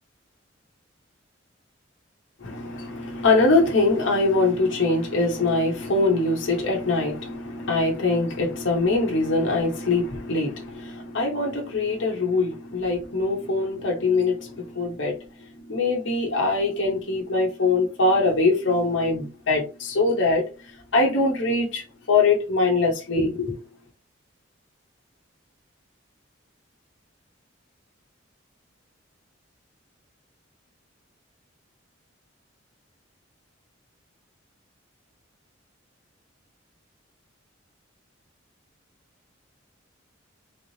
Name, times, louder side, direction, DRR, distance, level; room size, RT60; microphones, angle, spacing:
voice 1, 2.4-15.1 15.7-20.4 20.9-23.5, left 3 dB, 70° left, 0.9 m, -23 dB
3.7 x 3.1 x 2.7 m
head